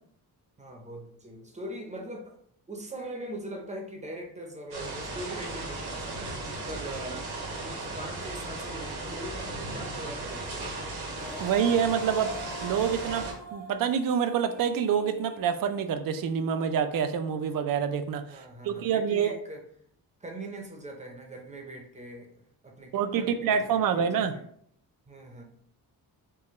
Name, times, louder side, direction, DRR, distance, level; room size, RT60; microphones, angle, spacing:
voice 1, 0.6-2.4 2.7-6.3 6.7-7.3 7.6-10.7 18.3-19.6 20.2-24.4 25.1-25.4, right 1 dB, 20° right, 1 dB, 0.7 m, -41 dB
sound 1, 4.7-13.3, right 2 dB, 85° right, 1.5 m, -36 dB
Female singing, 11.0-16.2, equal, 25° left, 0.8 m, -44 dB
voice 2, 11.4-12.4 12.6-13.3 13.5-19.4 22.9-24.3, right 7 dB, 60° right, 9 dB, 0.5 m, -27 dB
4.5 x 2.2 x 3.0 m, 0.65 s
cardioid pair, 130°, 38 cm